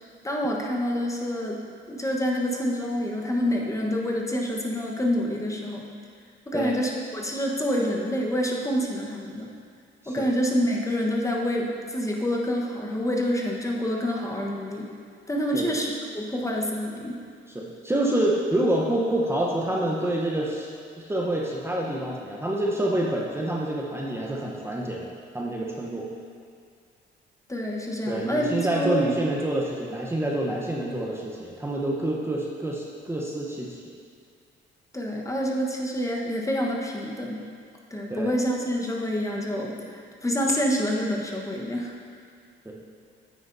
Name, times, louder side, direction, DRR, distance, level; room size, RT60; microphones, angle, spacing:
voice 1, 0.2-5.9 6.5-9.5 10.1-14.9 15.3-17.2 27.5-29.2 34.9-37.5 37.9-41.9, equal, 15° left, -1 dB, 1.1 m, -27 dB
voice 2, 17.5-20.7 21.0-26.1 28.1-34.0 38.1-38.3 42.6-42.8, right 1 dB, 10° right, -3 dB, 0.9 m, -27 dB
9.5 x 8.6 x 2.7 m, 2.2 s
cardioid pair, 90°, 20 cm